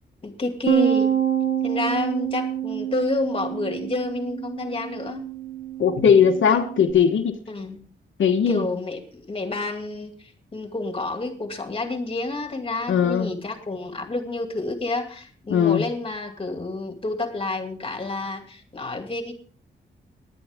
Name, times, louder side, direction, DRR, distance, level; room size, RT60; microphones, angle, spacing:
voice 1, 0.2-1.1 1.6-5.3 6.5-6.6 7.5-7.8 8.5-19.4, left 2 dB, 30° left, 5 dB, 2.4 m, -29 dB
Bass guitar, 0.7-6.9, right 9 dB, 40° right, 1.2 m, -27 dB
voice 2, 5.8-7.4 8.2-8.6 12.9-13.3 15.5-15.8, left 7 dB, 75° left, 2 dB, 1.3 m, -19 dB
18.5 x 10.5 x 3.6 m, 0.42 s
wide cardioid pair, 145°, 20 cm